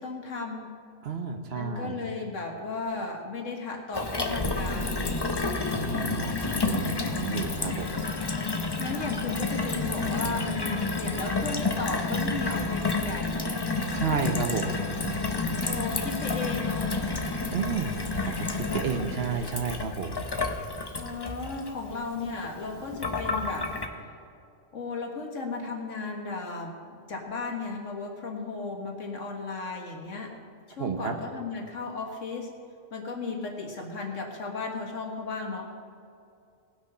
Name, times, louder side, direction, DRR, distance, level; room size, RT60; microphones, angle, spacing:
voice 1, 0.0-0.8 1.5-5.5 8.8-13.4 15.6-17.0 21.0-23.7 24.7-30.4 30.7-32.5 32.9-35.7, left 3 dB, 80° left, 1 dB, 1.9 m, -35 dB
voice 2, 1.0-2.0 5.7-7.9 13.9-14.7 17.5-17.9 18.3-20.1 30.8-31.2, right 5 dB, 55° right, 5 dB, 1.1 m, -31 dB
Gurgling / Water tap faucet / Sink (filling or washing), 3.9-23.9, left 3 dB, 25° left, 0.7 m, -30 dB
18.5 x 6.3 x 5.6 m, 2.5 s
omnidirectional pair, 1.3 m